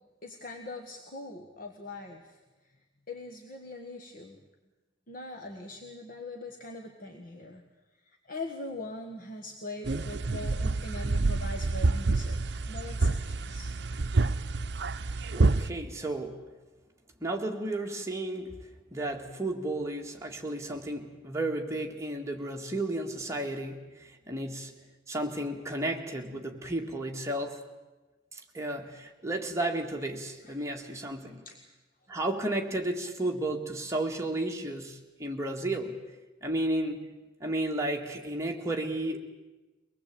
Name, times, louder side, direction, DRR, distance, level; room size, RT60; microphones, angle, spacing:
voice 1, 0.2-2.4 3.1-4.4 5.1-7.6 8.1-13.7 30.5-30.9 31.4-31.6, left 2 dB, 45° left, 3 dB, 1.7 m, -42 dB
sound 1, 9.8-15.7, right 3 dB, 60° right, 0.7 m, -28 dB
voice 2, 15.3-16.4 17.2-18.5 18.9-24.7 25.1-27.6 28.3-31.4 32.1-36.0 36.4-37.0 37.4-39.2, right 1 dB, 15° right, 2 dB, 2.0 m, -33 dB
24.0 x 19.5 x 8.6 m, 1.2 s
head